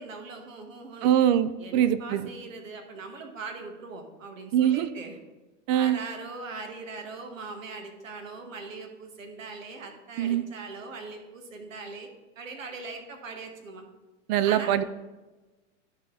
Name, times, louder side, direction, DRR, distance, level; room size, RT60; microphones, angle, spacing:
voice 1, 0.0-1.1 1.6-5.2 5.7-12.1 12.3-13.8 14.4-14.8, right 4 dB, 90° right, 5 dB, 1.6 m, -40 dB
voice 2, 1.0-2.3 4.5-4.9 5.7-6.0 10.2-10.4 14.3-14.8, right 10 dB, 35° right, 14 dB, 0.4 m, -23 dB
12.0 x 4.2 x 3.9 m, 1.1 s
hypercardioid pair, 130°, 38 cm